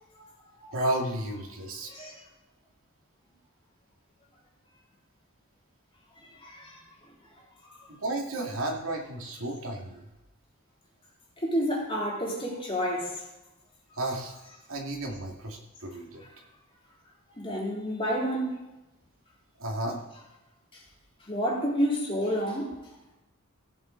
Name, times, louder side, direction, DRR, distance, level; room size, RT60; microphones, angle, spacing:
voice 1, 0.7-1.9 7.9-10.1 14.0-14.4 14.7-16.2 19.6-20.0, right 1 dB, 75° right, 1 dB, 2.2 m, -32 dB
voice 2, 1.9-2.2 6.2-6.8 7.6-7.9 11.4-13.2 16.2-16.3 17.4-18.5 20.7-20.8 21.3-22.7, equal, 25° left, -4 dB, 3.6 m, -30 dB
16.0 x 7.1 x 3.9 m, 1.0 s
head